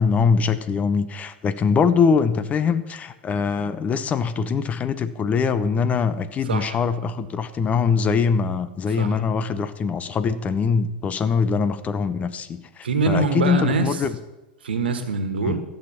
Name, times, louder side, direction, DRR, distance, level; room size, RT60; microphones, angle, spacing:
voice 1, 0.0-14.1, left 5 dB, 25° left, 13 dB, 0.9 m, -22 dB
voice 2, 6.4-6.8 8.9-9.2 12.8-14.0 14.6-15.6, right 4 dB, 80° right, 8 dB, 1.6 m, -24 dB
15.0 x 6.6 x 7.2 m, 1.1 s
hypercardioid pair, 100°, 5 cm